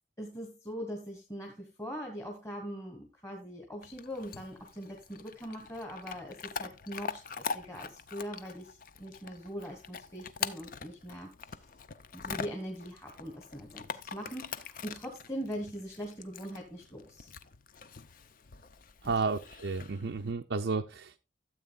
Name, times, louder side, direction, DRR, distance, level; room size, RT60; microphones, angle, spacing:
voice 1, 0.2-11.6 12.1-13.8 14.1-17.3 19.0-19.1, equal, 15° left, 1.3 m, -41 dB
Chewing mastication / Dog, 3.8-20.3, left 6 dB, 45° left, 0.5 m, -43 dB
voice 2, 19.0-21.2, right 4 dB, 65° right, 0.5 m, -32 dB
13.0 x 8.0 x 2.4 m
head